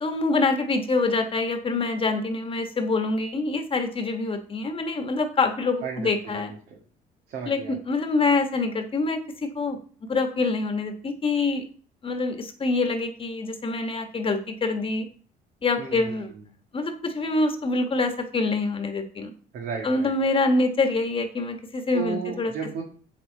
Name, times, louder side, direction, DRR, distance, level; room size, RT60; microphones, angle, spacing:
voice 1, 0.0-6.5 7.5-9.8 10.1-11.6 12.0-15.1 15.6-16.3 16.7-19.3 19.8-22.5, left 3 dB, 30° left, 6 dB, 1.3 m, -25 dB
voice 2, 5.8-6.8 7.3-7.8 15.8-16.4 19.5-20.3 21.9-22.8, right 6 dB, 70° right, 0 dB, 2.0 m, -34 dB
7.9 x 7.2 x 3.9 m, 0.43 s
cardioid pair, 110°, 17 cm